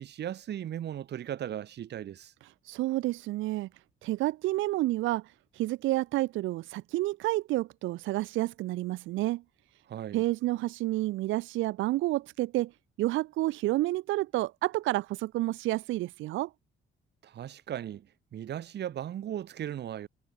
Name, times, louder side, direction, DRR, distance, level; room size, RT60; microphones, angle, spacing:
voice 1, 0.0-2.3 9.9-10.2 17.2-18.1 18.3-20.1, right 10 dB, 60° right, 1.0 m, -37 dB
voice 2, 2.6-3.7 4.0-9.4 10.1-12.7 13.0-16.5, right 17 dB, 80° right, 0.4 m, -30 dB
cardioid pair, 90°, 20 cm